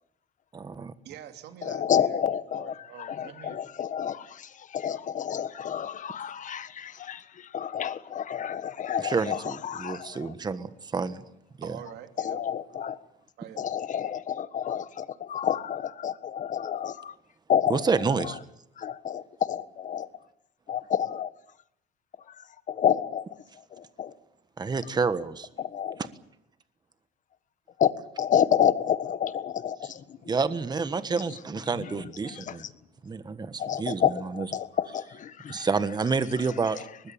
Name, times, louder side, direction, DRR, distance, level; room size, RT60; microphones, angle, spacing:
voice 1, 0.5-0.9 9.0-11.2 11.6-11.7 17.7-18.4 24.6-25.5 30.3-32.6 33.0-34.0 34.4-34.5 35.5-36.8, right 4 dB, 25° right, 1.4 m, -29 dB
voice 2, 1.0-2.2 2.5-3.6 9.7-10.2 11.6-12.4 13.4-13.7, right 10 dB, 80° right, 2.9 m, -45 dB
voice 3, 1.6-10.3 12.2-13.0 13.6-17.1 17.5-17.9 18.2-18.4 18.8-20.1 20.7-21.3 22.3-23.3 23.7-24.1 25.6-26.0 27.8-30.3 31.8-32.7 33.6-35.7, left 9 dB, 50° left, 1.6 m, -29 dB
23.0 x 20.5 x 9.0 m
cardioid pair, 110°, 17 cm